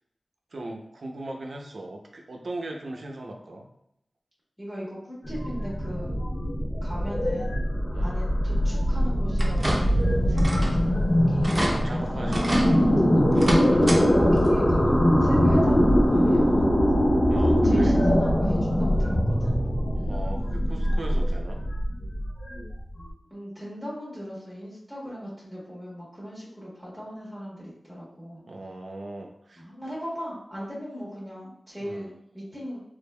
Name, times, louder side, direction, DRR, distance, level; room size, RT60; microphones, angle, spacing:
voice 1, 0.5-3.7 7.9-8.1 11.5-12.8 13.7-13.9 17.3-18.0 20.1-21.6 28.5-29.6 31.8-32.1, right 1 dB, 70° right, 2 dB, 0.6 m, -37 dB
voice 2, 4.6-6.2 6.8-7.6 8.0-11.6 12.1-13.2 14.0-16.7 17.6-19.5 19.9-20.1 23.3-28.4 29.6-32.8, equal, 5° left, -7 dB, 1.2 m, -38 dB
sound 1, 5.2-23.0, equal, 90° left, 1.5 m, -22 dB
sound 2, 5.2-20.8, equal, 40° left, 0.6 m, -34 dB
sound 3, 9.4-10.1 10.4-10.8 11.1-11.2 11.4-11.7 12.3-12.7 13.3-14.0 14.4-14.5 15.9-16.0 16.5-16.6, right 1 dB, 30° right, 0.6 m, -27 dB
3.4 x 3.3 x 2.2 m, 0.76 s
wide cardioid pair, 95°, 0 cm